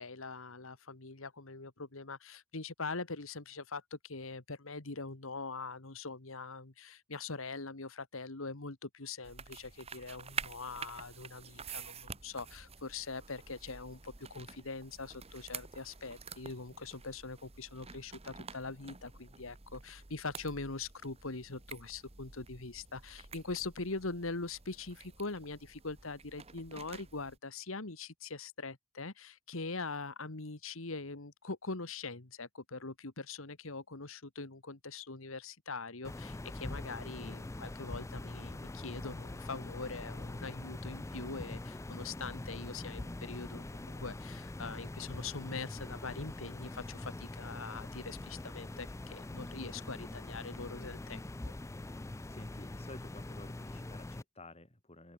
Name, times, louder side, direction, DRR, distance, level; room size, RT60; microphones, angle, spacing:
voice 1, 0.0-51.2, left 3 dB, 70° left, 1.8 m, -43 dB
sound 1, 9.2-27.4, right 5 dB, 30° right, 1.4 m, -49 dB
sound 2, 36.0-54.2, left 2 dB, 15° left, 0.4 m, -43 dB
voice 2, 52.3-55.1, left 2 dB, 30° left, 5.1 m, -52 dB
open air
head